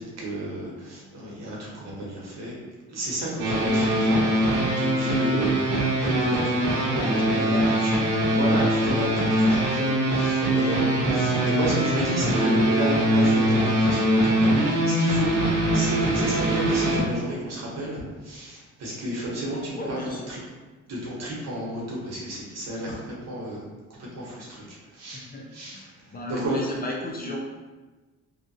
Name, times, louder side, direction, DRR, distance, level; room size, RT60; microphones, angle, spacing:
voice 1, 0.2-2.6 2.9-8.0 8.3-15.4 15.7-20.4 20.9-23.6 23.9-26.7, right 1 dB, 60° right, -4 dB, 1.1 m, -32 dB
voice 2, 3.3-3.7 7.2-7.9 11.1-11.4 19.7-20.3 25.1-27.4, left 1 dB, 30° left, -1 dB, 0.5 m, -35 dB
sound 1, 3.4-17.0, right 1 dB, 75° right, 0.7 m, -22 dB
2.7 x 2.4 x 2.7 m, 1.3 s
cardioid pair, 90°, 30 cm